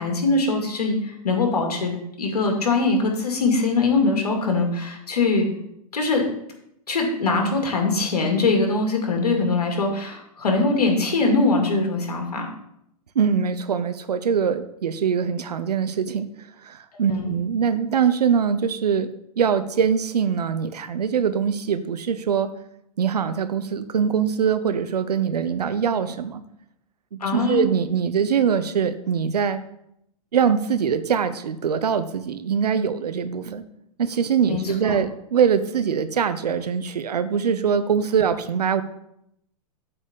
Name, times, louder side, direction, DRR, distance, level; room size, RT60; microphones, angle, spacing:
voice 1, 0.0-1.9 2.2-5.5 5.9-6.2 6.9-12.5 17.1-17.3 27.2-27.6 34.5-35.0, left 3 dB, 90° left, 2 dB, 2.4 m, -22 dB
voice 2, 13.1-16.3 16.6-19.1 19.4-22.5 23.0-26.4 27.1-29.6 30.3-33.6 34.0-38.8, right 7 dB, 90° right, 12 dB, 0.8 m, -23 dB
8.6 x 4.2 x 7.0 m, 0.77 s
hypercardioid pair, 115°, 20 cm